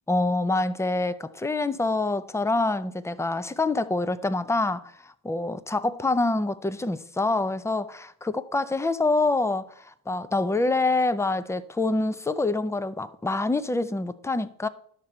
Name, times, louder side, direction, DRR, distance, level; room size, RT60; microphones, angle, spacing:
voice 1, 0.1-14.7, left 2 dB, 5° left, 0.5 m, -26 dB
11.0 x 6.5 x 4.3 m
cardioid pair, 70°, 41 cm